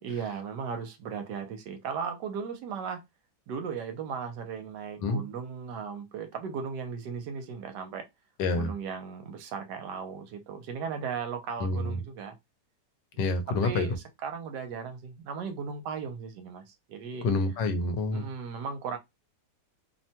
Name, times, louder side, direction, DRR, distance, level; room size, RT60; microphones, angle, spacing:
voice 1, 0.0-3.0 3.5-8.0 8.5-12.4 13.5-17.3 18.1-19.0, right 6 dB, 75° right, 1.2 m, -36 dB
voice 2, 8.4-8.7 11.6-12.0 13.2-13.9 17.2-18.3, left 3 dB, 80° left, 1.3 m, -27 dB
3.1 x 2.1 x 2.7 m
omnidirectional pair, 1.9 m